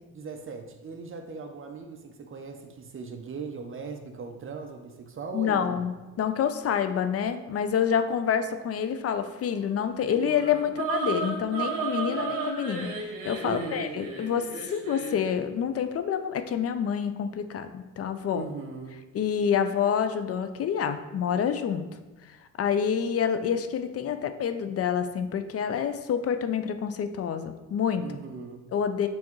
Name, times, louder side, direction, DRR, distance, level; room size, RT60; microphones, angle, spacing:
voice 1, 0.1-5.9 13.4-13.9 18.3-19.0 28.0-28.7, right 4 dB, 35° right, 5 dB, 0.7 m, -39 dB
voice 2, 5.3-18.5 19.1-21.9 22.3-28.0 28.7-29.1, left 8 dB, 40° left, 9 dB, 0.6 m, -28 dB
sound 1, 10.0-15.3, right 4 dB, 65° right, 1.6 m, -33 dB
8.7 x 3.5 x 3.1 m, 1.2 s
cardioid pair, 105°, 35 cm